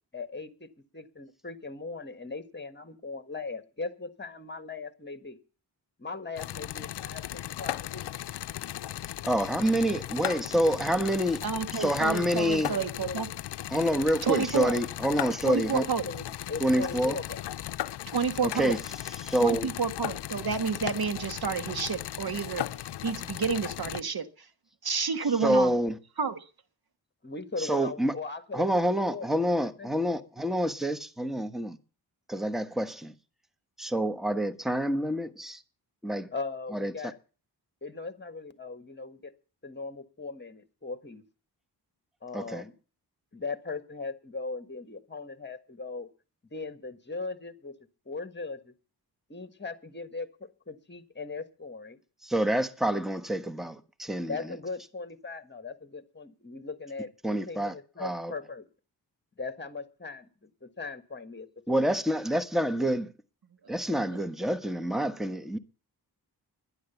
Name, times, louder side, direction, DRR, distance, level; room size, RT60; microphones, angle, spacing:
voice 1, 0.1-5.4 6.0-8.1 12.7-13.2 15.8-17.4 27.2-29.4 29.8-30.2 36.3-37.2 37.8-39.3 39.6-41.2 42.2-42.7 43.3-46.1 46.5-47.7 48.0-48.7 49.3-52.0 54.3-58.6 59.4-62.0, left 4 dB, 25° left, 1.6 m, -39 dB
sound 1, 6.4-24.0, left 12 dB, 80° left, 0.6 m, -37 dB
voice 2, 9.2-11.4 11.8-12.7 13.7-15.8 16.6-17.2 18.5-18.8 19.2-19.7 25.4-25.9 27.6-28.1 28.5-31.8 32.3-33.1 33.8-35.6 36.0-36.3 36.7-36.9 42.3-42.6 52.2-54.5 57.2-57.7 58.0-58.3 61.7-63.1 63.7-65.6, equal, ahead, 1.2 m, -27 dB
voice 3, 11.4-13.3 14.2-14.8 15.4-16.1 18.1-18.8 19.4-22.6 23.0-24.5 24.8-25.7 26.2-26.5, right 6 dB, 60° right, 1.4 m, -30 dB
11.5 x 11.0 x 7.0 m
cardioid pair, 65°, 41 cm